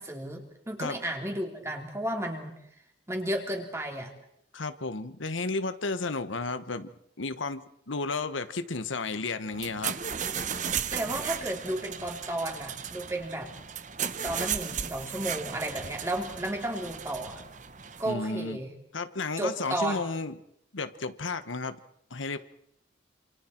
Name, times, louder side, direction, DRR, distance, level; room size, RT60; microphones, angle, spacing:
voice 1, 0.0-2.5 3.1-4.1 10.9-13.5 14.2-17.4 18.0-18.7 19.4-20.0, right 1 dB, 15° right, 2 dB, 3.3 m, -33 dB
voice 2, 4.5-6.9 7.2-10.0 18.0-18.6 18.9-20.4 20.7-21.8 22.1-22.4, left 3 dB, 85° left, 11 dB, 1.2 m, -33 dB
sound 1, 9.5-18.1, right 7 dB, 40° right, 1.0 m, -35 dB
28.0 x 27.5 x 4.5 m, 0.72 s
head